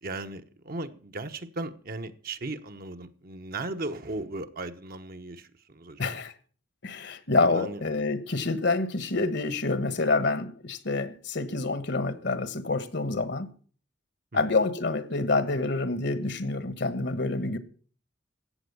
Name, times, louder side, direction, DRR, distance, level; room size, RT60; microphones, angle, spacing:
voice 1, 0.0-6.2 7.5-7.8 14.3-14.4, right 2 dB, 50° right, 1.1 m, -37 dB
voice 2, 6.0-6.3 6.8-13.5 14.3-17.6, left 3 dB, 65° left, 1.4 m, -27 dB
14.5 x 8.7 x 6.9 m
head